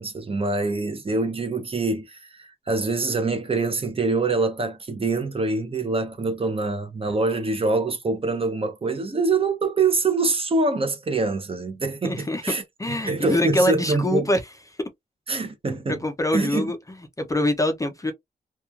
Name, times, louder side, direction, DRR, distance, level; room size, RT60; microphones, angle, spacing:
voice 1, 0.0-12.6 12.9-14.3 15.3-16.0 16.3-16.7, right 3 dB, 35° right, 0.6 m, -25 dB
voice 2, 12.0-12.4 12.8-14.4 15.9-16.8 17.2-18.1, left 1 dB, 20° left, 0.4 m, -24 dB
2.9 x 2.2 x 2.3 m
wide cardioid pair, 165°, 17 cm